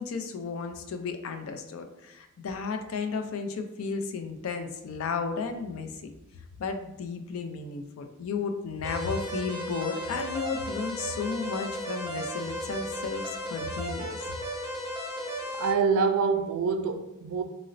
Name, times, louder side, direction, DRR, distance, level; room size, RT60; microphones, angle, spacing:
voice 1, 0.0-6.1 6.6-14.3, left 5 dB, 70° left, 7 dB, 0.4 m, -33 dB
sound 1, 8.8-15.7, equal, 15° right, 0.7 m, -35 dB
voice 2, 15.5-17.4, right 5 dB, 80° right, 6 dB, 0.4 m, -26 dB
3.9 x 2.0 x 2.5 m, 0.90 s
head